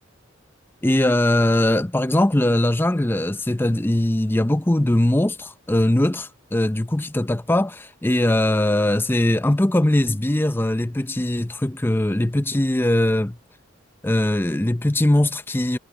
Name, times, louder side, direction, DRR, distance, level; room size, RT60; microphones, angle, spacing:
voice 1, 0.8-13.4 14.0-15.8, left 1 dB, 10° left, 0.5 m, -20 dB
head